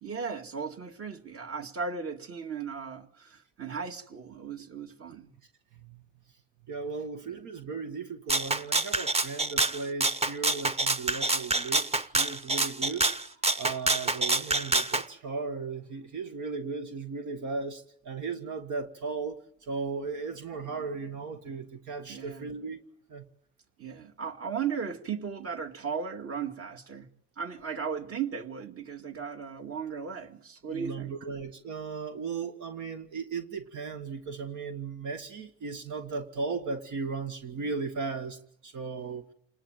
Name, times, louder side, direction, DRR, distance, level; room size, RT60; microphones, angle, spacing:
voice 1, 0.0-5.3 7.2-7.4 9.7-9.8 22.1-22.5 23.8-27.1 27.4-31.1, right 6 dB, 50° right, 2.3 m, -36 dB
voice 2, 6.7-13.1 13.6-22.8 23.1-23.2 30.7-39.2, right 4 dB, 80° right, 1.8 m, -36 dB
Rattle (instrument), 8.3-15.0, right 2 dB, 20° right, 1.0 m, -27 dB
28.0 x 19.5 x 9.0 m
cardioid pair, 90°, 30 cm